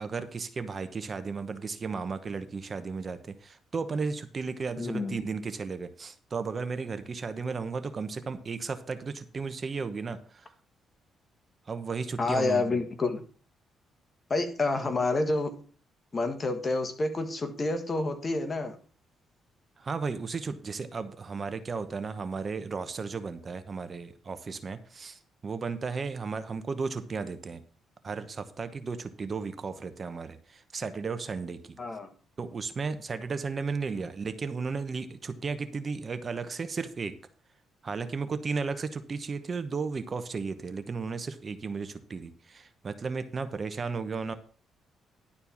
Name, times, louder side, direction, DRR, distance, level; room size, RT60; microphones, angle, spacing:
voice 1, 0.0-10.5 11.7-12.8 19.8-27.6 28.0-31.8 32.4-37.2 37.8-44.3, right 4 dB, 40° right, 11 dB, 0.9 m, -34 dB
voice 2, 4.8-5.2 12.2-13.2 14.3-15.5 16.1-18.8 31.8-32.1, left 2 dB, 30° left, 8 dB, 1.5 m, -28 dB
11.0 x 4.5 x 7.1 m, 0.43 s
cardioid pair, 90°, 0 cm